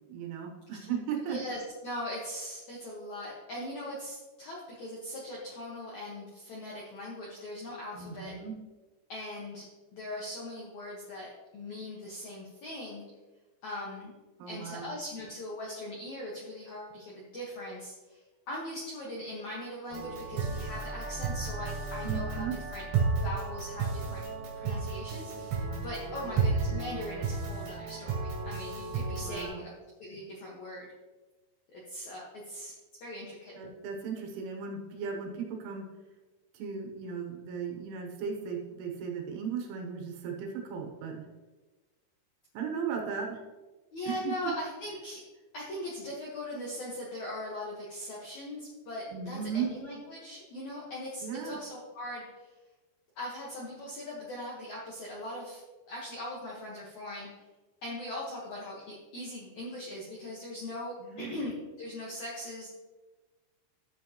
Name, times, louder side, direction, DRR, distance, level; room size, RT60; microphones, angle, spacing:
voice 1, 0.1-1.4 8.0-8.6 14.4-14.9 22.0-22.6 26.1-26.3 29.2-29.6 33.6-35.9 36.5-41.3 42.6-43.4 44.1-44.5 49.1-49.7 51.2-51.6 61.0-61.3, right 6 dB, 80° right, 1 dB, 3.5 m, -36 dB
voice 2, 1.3-8.3 9.1-9.6 9.9-13.0 13.6-14.1 14.5-18.2 18.5-22.8 23.2-24.2 24.6-29.7 30.0-30.9 31.7-32.7 33.0-33.5 43.9-45.2 45.5-52.5 53.1-57.4 57.8-62.7, left 1 dB, 90° left, -4 dB, 1.6 m, -40 dB
sound 1, 19.9-29.5, right 4 dB, 55° right, 3.9 m, -33 dB
12.5 x 7.5 x 2.9 m, 1.2 s
omnidirectional pair, 5.7 m